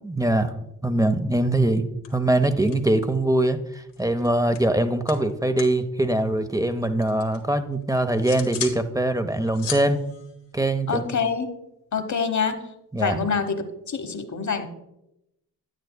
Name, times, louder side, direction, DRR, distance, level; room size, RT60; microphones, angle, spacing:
voice 1, 0.0-0.5 0.8-1.8 2.1-10.0 10.5-11.1 12.9-13.2, right 1 dB, 10° right, 9 dB, 0.7 m, -22 dB
sound 1, 1.6-1.8 2.0-3.3 3.5-5.8 6.1-7.4 7.8-8.8 9.2-11.3, left 7 dB, 70° left, 1.3 m, -38 dB
voice 2, 10.9-11.5 11.9-12.6 13.0-14.7, left 5 dB, 40° left, 8 dB, 1.1 m, -26 dB
9.3 x 9.3 x 2.2 m, 0.86 s
supercardioid pair, 45°, 43 cm